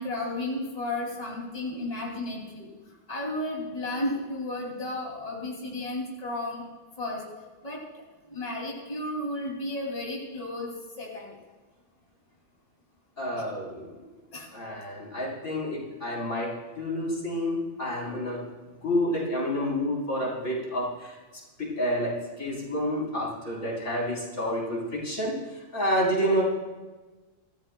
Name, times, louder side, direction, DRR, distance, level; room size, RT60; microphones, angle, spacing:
voice 1, 0.0-6.6 7.0-7.2 7.6-7.8 8.3-11.3 13.4-13.5 14.3-14.5, left 1 dB, 30° left, -2 dB, 2.7 m, -33 dB
voice 2, 13.2-13.9 14.5-16.5 16.8-18.4 18.8-21.1 21.6-22.1 22.4-25.3 25.7-26.4, equal, 70° left, -4 dB, 4.4 m, -29 dB
25.5 x 14.5 x 2.2 m, 1.3 s
omnidirectional pair, 1.3 m